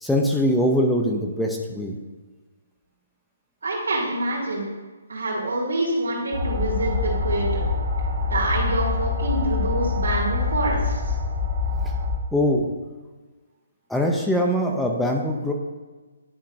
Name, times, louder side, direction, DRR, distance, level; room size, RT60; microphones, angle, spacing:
voice 1, 0.0-2.0 12.3-12.7 13.9-15.5, equal, ahead, 1 dB, 0.4 m, -22 dB
voice 2, 3.6-4.7 5.1-7.6 8.3-11.1, right 1 dB, 85° right, -7 dB, 2.1 m, -26 dB
sound 1, 6.3-12.1, left 4 dB, 25° right, 1.7 m, -25 dB
10.0 x 5.7 x 2.6 m, 1.3 s
hypercardioid pair, 165°, 0 cm